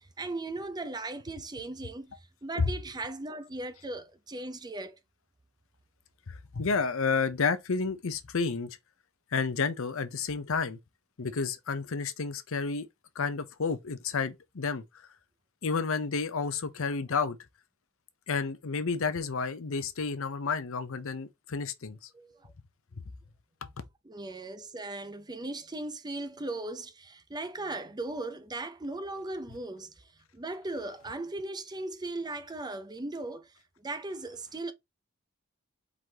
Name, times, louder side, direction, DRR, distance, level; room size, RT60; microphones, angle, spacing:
voice 1, 0.0-2.1 2.4-5.0 22.1-22.5 24.0-29.9 30.3-33.5 33.8-34.7, right 2 dB, 20° right, 0.6 m, -38 dB
voice 2, 6.3-8.8 9.3-10.8 11.2-12.9 13.2-14.8 15.6-17.4 18.3-22.0, left 5 dB, 65° left, 0.7 m, -31 dB
4.8 x 3.9 x 2.8 m
head